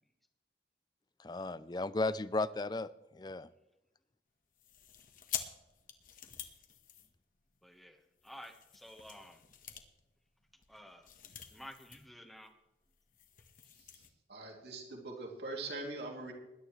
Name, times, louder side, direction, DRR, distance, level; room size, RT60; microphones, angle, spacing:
voice 1, 1.2-3.5, left 2 dB, 25° left, 16 dB, 0.4 m, -35 dB
sound 1, 4.5-7.6 8.2-12.1 12.4-12.5 12.8-14.1, left 9 dB, 50° left, 1.3 m, -47 dB
voice 2, 7.6-8.0 8.2-9.4 10.7-11.1 11.5-12.5, equal, ahead, 3 dB, 1.3 m, -51 dB
voice 3, 14.3-16.3, right 2 dB, 70° right, 1 dB, 2.8 m, -42 dB
20.0 x 11.5 x 3.2 m, 0.96 s
head